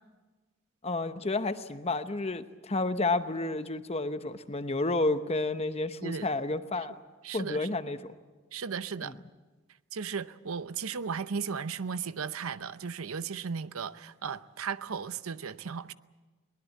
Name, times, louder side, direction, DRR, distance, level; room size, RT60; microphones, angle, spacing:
voice 1, 0.8-7.0 7.3-8.1 9.0-9.2, left 2 dB, 30° left, 0.9 m, -31 dB
voice 2, 7.2-7.7 8.5-9.1 9.9-15.9, right 6 dB, 85° right, 0.7 m, -36 dB
22.5 x 20.0 x 8.3 m
head